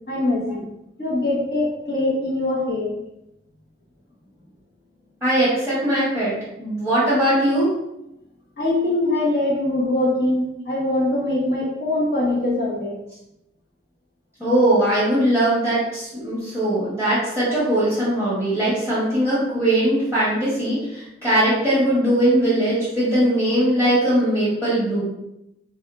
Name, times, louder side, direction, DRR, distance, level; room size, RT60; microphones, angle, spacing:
voice 1, 0.1-0.6 1.0-2.9 8.6-12.9, left 1 dB, 55° left, -6 dB, 1.1 m, -22 dB
voice 2, 5.2-7.7 14.4-25.0, right 1 dB, 10° left, -12 dB, 1.1 m, -20 dB
3.3 x 2.7 x 2.3 m, 0.86 s
head